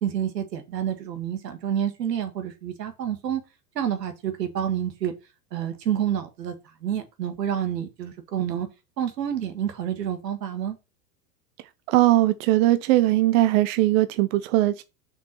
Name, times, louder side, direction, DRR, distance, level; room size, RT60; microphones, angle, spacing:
voice 1, 0.0-3.4 3.8-5.1 5.5-6.6 6.8-8.7 9.0-10.8, right 9 dB, 90° right, 1.8 m, -28 dB
voice 2, 11.9-14.8, right 15 dB, 55° right, 0.7 m, -20 dB
6.2 x 4.6 x 5.7 m
hypercardioid pair, 110°, 48 cm